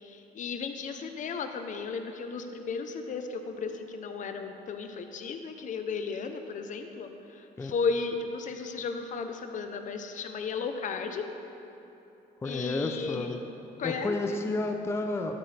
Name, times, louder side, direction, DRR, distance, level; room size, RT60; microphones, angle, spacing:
voice 1, 0.4-7.1 7.6-11.3 12.4-13.4 13.8-14.4, left 5 dB, 50° left, 6 dB, 0.7 m, -34 dB
voice 2, 12.4-13.4 13.8-15.4, left 2 dB, 15° left, 4 dB, 0.5 m, -31 dB
13.0 x 8.8 x 3.4 m, 2.9 s
cardioid pair, 110°, 17 cm